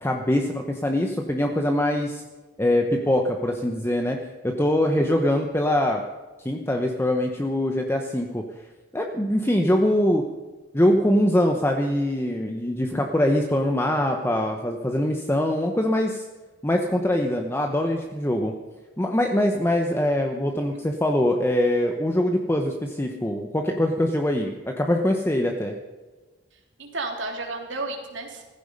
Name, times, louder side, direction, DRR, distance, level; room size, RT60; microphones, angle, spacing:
voice 1, 0.0-2.2 2.6-4.2 4.4-6.0 6.4-8.4 8.9-10.2 10.7-16.2 16.6-18.5 19.0-25.8, left 1 dB, 15° left, 3 dB, 1.0 m, -23 dB
voice 2, 4.8-5.1 20.5-20.8 26.8-28.4, right 3 dB, 85° right, 1 dB, 3.3 m, -33 dB
15.5 x 15.0 x 5.4 m, 1.3 s
head